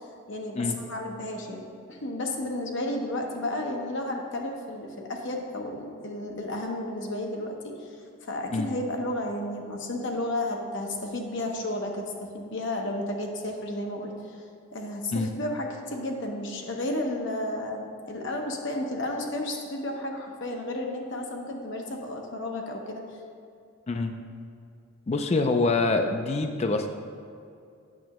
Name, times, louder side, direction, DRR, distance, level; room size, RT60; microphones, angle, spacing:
voice 1, 0.3-7.9 8.2-14.4 14.7-23.0, left 1 dB, 55° left, 2 dB, 0.8 m, -32 dB
voice 2, 25.1-26.9, left 3 dB, 30° left, 5 dB, 0.3 m, -25 dB
8.5 x 6.2 x 3.0 m, 2.4 s
head